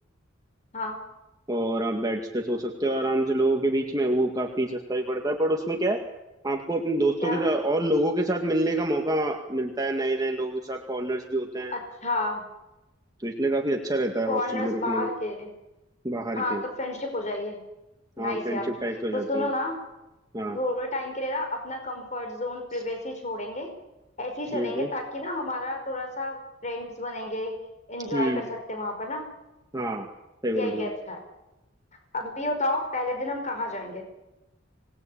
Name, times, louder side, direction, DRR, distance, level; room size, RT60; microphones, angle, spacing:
voice 1, 1.5-6.0 6.4-11.7 13.2-15.1 16.0-16.6 18.2-19.5 20.3-20.6 24.5-24.9 28.1-28.4 29.7-30.1 30.4-30.9, right 1 dB, 20° right, 2 dB, 2.1 m, -27 dB
voice 2, 7.2-7.5 11.7-12.4 14.3-15.5 16.3-17.6 18.2-18.7 19.1-19.8 20.5-23.7 24.2-26.4 26.6-27.5 27.9-29.2 30.5-31.2 32.1-34.0, left 1 dB, 40° left, 4 dB, 5.1 m, -31 dB
26.0 x 19.5 x 8.7 m, 0.98 s
head